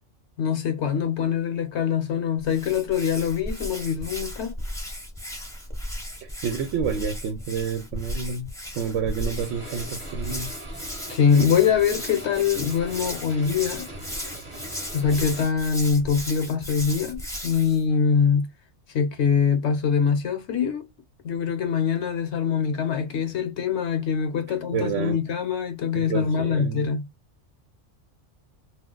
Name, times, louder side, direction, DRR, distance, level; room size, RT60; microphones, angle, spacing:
voice 1, 0.4-4.5 11.1-13.9 14.9-18.5 18.9-20.9 21.2-27.1, left 6 dB, 70° left, 0.9 m, -23 dB
Hands, 2.4-17.8, left 1 dB, 5° left, 0.5 m, -35 dB
voice 2, 6.2-8.5 8.7-10.5 24.5-25.2 25.9-26.8, right 6 dB, 80° right, 0.9 m, -29 dB
sound 1, 9.4-15.4, right 1 dB, 30° right, 0.9 m, -41 dB
2.3 x 2.3 x 3.7 m
omnidirectional pair, 1.3 m